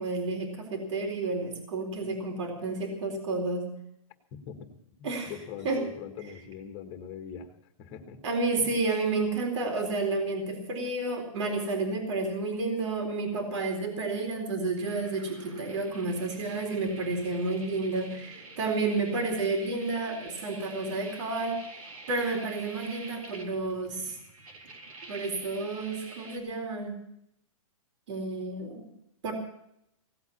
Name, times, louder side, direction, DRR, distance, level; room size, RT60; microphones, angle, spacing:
voice 1, 0.0-3.7 5.0-5.3 5.6-5.9 8.2-21.6 22.1-24.2 25.1-27.0 28.1-28.9 29.2-29.3, right 3 dB, 60° right, 3 dB, 4.2 m, -31 dB
voice 2, 4.3-4.7 5.0-7.5 7.8-8.2 8.5-8.7, left 8 dB, 25° left, 6 dB, 1.7 m, -42 dB
sound 1, 14.8-26.4, right 3 dB, 85° right, 4.0 m, -47 dB
17.5 x 8.3 x 8.5 m, 0.78 s
hypercardioid pair, 150°, 18 cm